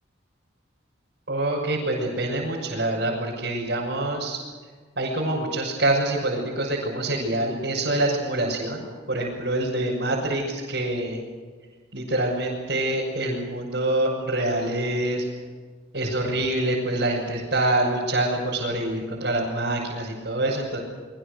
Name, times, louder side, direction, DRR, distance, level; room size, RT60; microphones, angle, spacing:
voice 1, 1.3-4.4 5.0-11.2 11.9-15.2 15.9-20.8, right 1 dB, 65° right, -6 dB, 6.5 m, -26 dB
26.5 x 23.0 x 6.8 m, 1.5 s
head